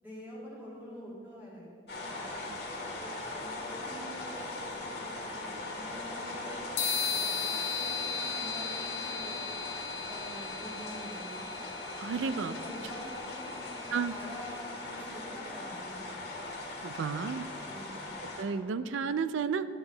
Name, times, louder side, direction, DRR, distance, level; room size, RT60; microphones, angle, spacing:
voice 1, 0.0-2.5 3.0-6.6 7.1-9.4 10.0-11.4 12.1-16.0 17.7-18.0, equal, 10° right, -8 dB, 2.3 m, -46 dB
sound 1, 1.9-18.4, left 2 dB, 55° left, 1.6 m, -40 dB
sound 2, 6.8-14.4, left 5 dB, 75° left, 1.5 m, -37 dB
voice 2, 12.0-12.5 13.9-14.1 16.8-17.5 18.4-19.7, right 5 dB, 85° right, 13 dB, 0.4 m, -32 dB
11.5 x 6.1 x 3.9 m, 2.3 s
head